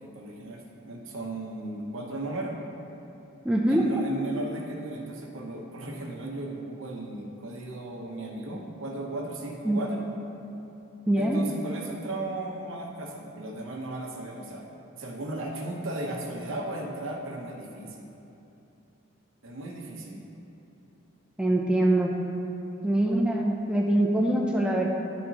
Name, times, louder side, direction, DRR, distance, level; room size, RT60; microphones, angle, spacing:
voice 1, 0.0-2.5 3.7-10.0 11.2-14.6 15.0-18.1 19.4-20.2, right 2 dB, 60° right, 0 dB, 0.8 m, -36 dB
voice 2, 3.4-4.0 9.6-9.8 11.1-11.4 21.4-22.1 22.8-24.9, right 1 dB, 5° right, -1 dB, 0.3 m, -23 dB
10.0 x 4.2 x 2.8 m, 2.8 s
head